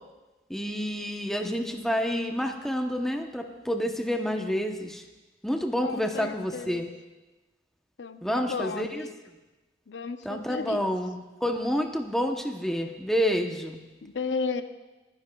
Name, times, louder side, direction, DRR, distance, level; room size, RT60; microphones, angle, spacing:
voice 1, 0.5-5.0 5.4-6.9 8.2-9.1 10.2-13.8, equal, ahead, 3 dB, 0.8 m, -29 dB
voice 2, 5.8-6.8 8.0-9.1 9.9-10.9 14.0-14.6, left 4 dB, 80° left, 9 dB, 0.6 m, -34 dB
26.5 x 10.5 x 2.3 m, 1.1 s
head